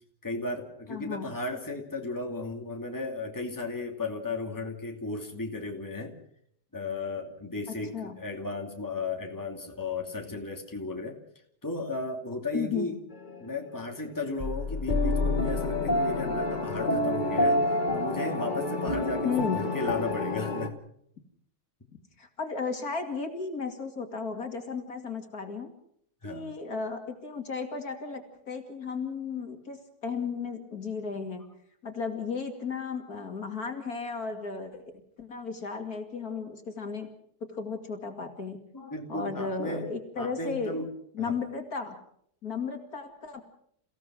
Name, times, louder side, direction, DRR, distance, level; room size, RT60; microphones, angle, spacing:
voice 1, 0.2-6.1 6.7-11.2 11.6-13.0 13.4-20.7 26.2-26.5 38.7-40.9 41.2-41.4, left 3 dB, 10° left, 2 dB, 2.6 m, -35 dB
voice 2, 0.9-1.3 7.7-8.1 12.5-12.9 19.2-19.6 22.2-25.7 26.2-31.4 31.8-34.9 35.2-37.1 37.5-38.6 39.1-40.8 41.1-42.0 42.4-43.4, left 5 dB, 60° left, 5 dB, 2.9 m, -34 dB
sound 1, 13.1-13.4 14.4-20.7, left 2 dB, 30° left, 1.5 m, -28 dB
29.0 x 16.5 x 6.2 m, 0.68 s
omnidirectional pair, 1.8 m